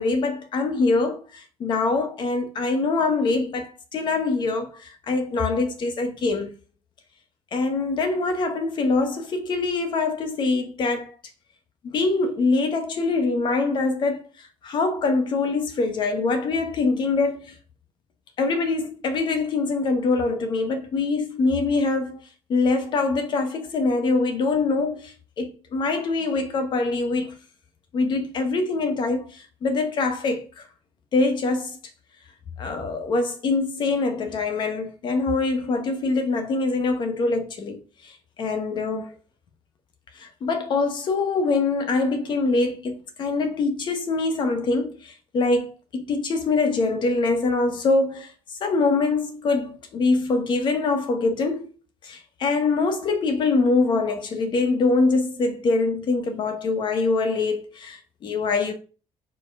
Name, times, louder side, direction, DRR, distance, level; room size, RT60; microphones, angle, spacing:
voice 1, 0.0-6.5 7.5-11.1 11.8-17.5 18.4-22.2 22.5-27.3 27.9-30.6 31.1-31.8 32.6-39.2 40.1-48.3 48.6-51.7 52.0-58.7, left 3 dB, 45° left, 1.3 m, -24 dB
5.0 x 4.5 x 5.4 m
cardioid pair, 155°, 11 cm